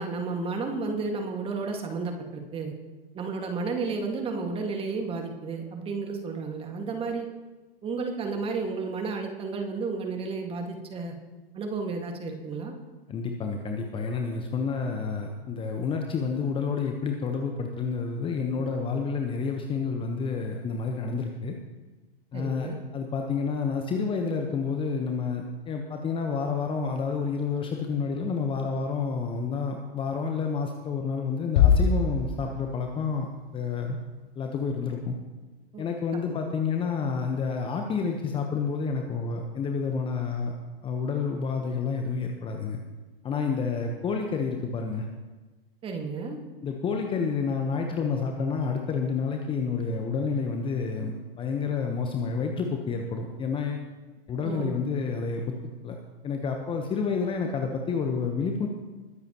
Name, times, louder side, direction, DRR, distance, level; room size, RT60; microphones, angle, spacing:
voice 1, 0.0-2.7 3.1-7.3 7.8-11.2 11.5-12.7 22.3-22.8 35.7-35.8 36.3-36.4 45.8-46.4 54.4-54.8, right 4 dB, 20° right, 3 dB, 1.9 m, -32 dB
voice 2, 13.1-21.5 22.3-33.3 33.5-34.0 34.4-35.1 35.8-40.5 40.8-42.8 43.2-45.0 46.6-53.9 54.3-55.5 55.8-56.0 56.2-58.7, left 5 dB, 15° left, 3 dB, 1.0 m, -29 dB
sound 1, 31.6-33.0, left 7 dB, 45° left, 0.9 m, -22 dB
21.5 x 10.5 x 3.0 m, 1.2 s
figure-of-eight pair, 110°, 31 cm